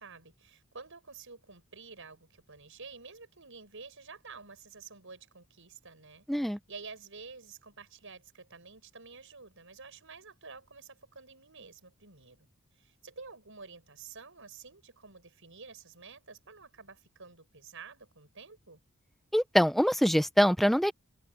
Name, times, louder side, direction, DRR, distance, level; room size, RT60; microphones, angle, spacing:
voice 1, 0.0-12.5 12.7-18.8, right 4 dB, 65° right, 7.6 m, -50 dB
voice 2, 6.3-6.6 19.3-20.9, equal, ahead, 1.0 m, -24 dB
head